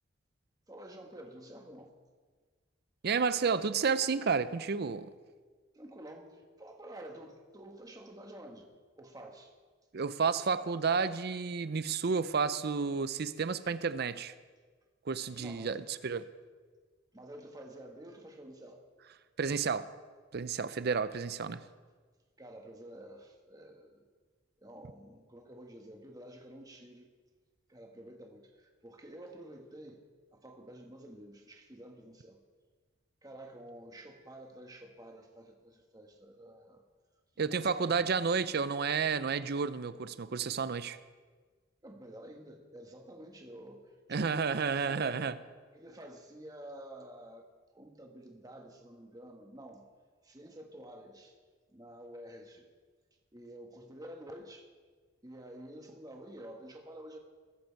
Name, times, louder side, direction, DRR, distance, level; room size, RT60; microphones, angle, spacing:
voice 1, 0.7-1.9 5.7-9.5 15.4-15.8 17.1-18.8 22.4-24.0 24.6-27.1 27.7-30.0 30.3-32.4 33.2-36.8 37.3-38.2 41.8-45.4 45.7-49.9 50.2-51.4 51.7-52.7 53.3-54.7 55.2-57.2, right 1 dB, 20° right, 2 dB, 1.4 m, -50 dB
voice 2, 3.0-5.1 9.9-14.3 15.1-16.3 19.4-19.9 20.3-21.6 37.4-41.0 44.1-45.3, right 5 dB, 55° right, 14 dB, 0.5 m, -31 dB
21.0 x 7.9 x 4.6 m, 1.5 s
head